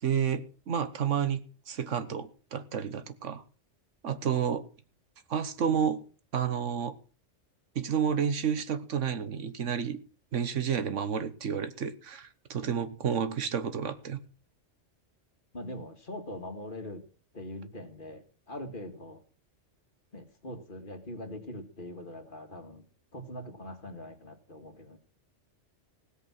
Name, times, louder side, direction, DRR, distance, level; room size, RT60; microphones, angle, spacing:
voice 1, 0.0-3.4 4.0-4.6 5.3-6.0 6.3-7.0 7.7-10.0 10.3-14.2, right 7 dB, 85° right, 1.5 m, -30 dB
voice 2, 15.5-17.0 17.3-19.2 20.1-22.9 23.1-25.0, left 1 dB, 45° left, 2.2 m, -42 dB
17.0 x 8.2 x 6.1 m
omnidirectional pair, 1.2 m